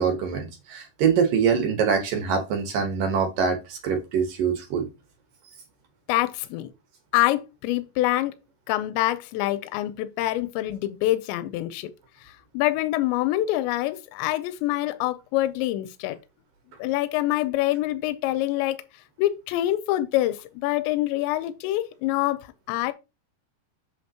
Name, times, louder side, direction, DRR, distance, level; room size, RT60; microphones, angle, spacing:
voice 1, 0.0-4.9, right 6 dB, 65° right, 2.4 m, -24 dB
voice 2, 6.1-6.7 7.1-8.3 8.7-11.9 12.2-16.2 16.8-18.8 19.2-22.4 22.7-22.9, left 15 dB, 85° left, 2.9 m, -25 dB
7.8 x 7.7 x 2.9 m
omnidirectional pair, 5.2 m